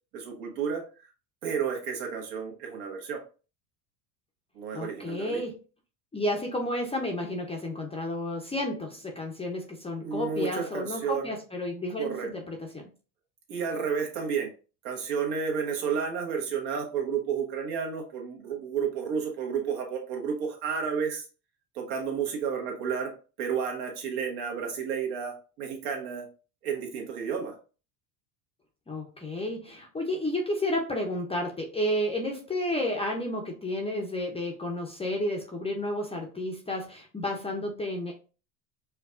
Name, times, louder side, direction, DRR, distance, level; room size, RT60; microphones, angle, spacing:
voice 1, 0.1-0.8 1.4-3.2 4.5-5.4 10.0-11.3 12.0-12.3 13.5-14.5 14.8-21.3 21.7-23.1 23.4-26.3 26.6-27.6, right 6 dB, 70° right, 2 dB, 1.3 m, -31 dB
voice 2, 4.7-5.6 6.1-12.9 28.9-38.1, left 1 dB, 10° left, 1 dB, 0.5 m, -31 dB
4.7 x 2.3 x 2.4 m, 0.35 s
supercardioid pair, 105°, 50 cm